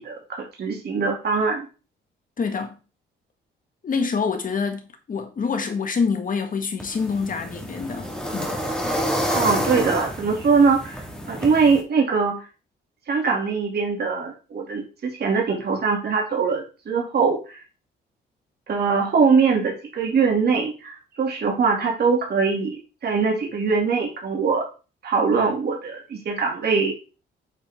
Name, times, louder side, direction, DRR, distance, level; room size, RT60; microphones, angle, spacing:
voice 1, 0.0-1.7 9.3-12.4 13.1-17.6 18.7-22.7 23.0-24.6 25.0-26.9, right 5 dB, 55° right, 2.6 m, -22 dB
voice 2, 2.4-2.8 3.8-8.6, left 5 dB, 45° left, 1.7 m, -26 dB
sound 1, 6.8-11.8, equal, 5° left, 2.0 m, -28 dB
8.3 x 4.9 x 3.7 m
cardioid pair, 90°, 20 cm